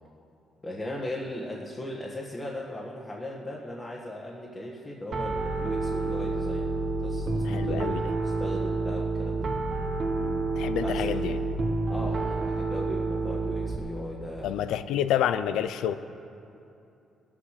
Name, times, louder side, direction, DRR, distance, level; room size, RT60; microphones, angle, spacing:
voice 1, 0.6-6.7 7.0-9.4 10.8-11.3 11.9-14.5, left 1 dB, 20° left, -3 dB, 1.6 m, -38 dB
Piano, 5.1-13.8, right 3 dB, 50° right, 1.5 m, -29 dB
voice 2, 7.4-8.0 10.2-11.4 14.4-15.9, left 10 dB, 85° left, 12 dB, 0.5 m, -29 dB
19.0 x 7.4 x 6.7 m, 2.7 s
cardioid pair, 90°, 0 cm